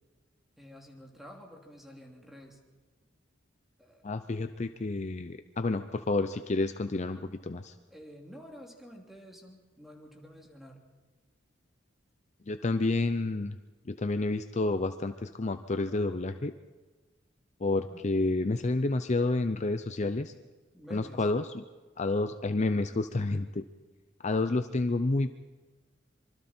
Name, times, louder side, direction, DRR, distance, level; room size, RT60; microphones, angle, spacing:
voice 1, 0.6-2.6 3.8-4.0 7.9-10.8 17.9-18.1 20.7-21.3, equal, ahead, 1 dB, 2.9 m, -49 dB
voice 2, 4.0-7.7 12.5-13.6 13.9-16.5 17.6-20.3 20.9-21.6 22.0-23.6 24.2-25.3, left 2 dB, 40° left, 9 dB, 0.6 m, -29 dB
25.5 x 24.0 x 4.4 m, 1.3 s
head